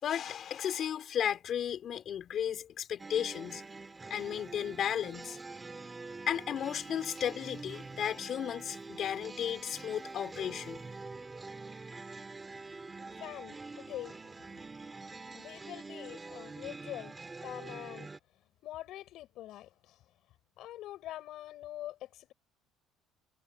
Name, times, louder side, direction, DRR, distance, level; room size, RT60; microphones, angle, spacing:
voice 1, 0.0-3.6 4.1-5.4 6.3-10.8, left 9 dB, 40° left, 4.6 m, -34 dB
sound 1, 3.0-18.2, right 3 dB, 15° right, 2.6 m, -46 dB
voice 2, 13.1-14.2 15.3-17.1 17.4-18.1 18.6-20.0 20.6-22.3, left 14 dB, 55° left, 7.1 m, -44 dB
cardioid pair, 155°, 0 cm